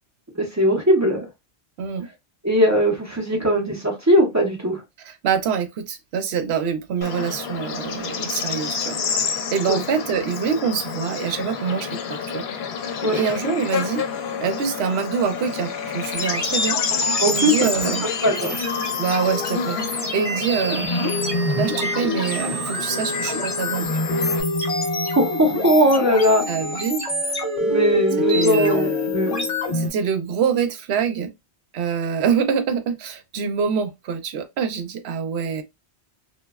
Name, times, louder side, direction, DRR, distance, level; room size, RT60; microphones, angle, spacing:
voice 1, 0.4-1.2 2.4-4.8 9.7-9.8 13.0-13.2 17.2-17.7 18.0-18.6 25.2-26.4 27.6-29.5, equal, 20° right, 0.5 m, -19 dB
voice 2, 5.1-12.5 13.0-14.0 14.4-18.1 19.0-20.9 21.6-23.9 26.5-27.0 28.3-29.1 29.7-31.3 31.7-35.6, right 7 dB, 75° right, 0.8 m, -25 dB
Bird / Insect, 7.0-24.4, left 6 dB, 75° left, 0.8 m, -29 dB
sound 1, 16.1-29.9, left 2 dB, 35° left, 0.8 m, -25 dB
3.0 x 2.2 x 2.3 m
omnidirectional pair, 1.1 m